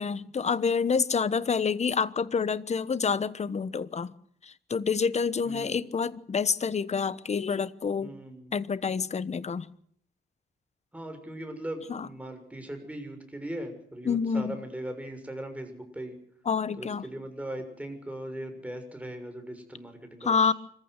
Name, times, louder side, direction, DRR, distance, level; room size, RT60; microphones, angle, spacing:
voice 1, 0.0-4.1 4.4-8.1 8.5-9.7 11.9-12.1 14.1-14.6 16.5-17.0 20.2-20.5, left 5 dB, 35° left, 1.1 m, -28 dB
voice 2, 5.4-5.8 8.0-8.5 10.9-16.2 16.8-20.5, right 1 dB, 5° right, 6.7 m, -39 dB
25.5 x 15.0 x 8.3 m
cardioid pair, 105°, 20 cm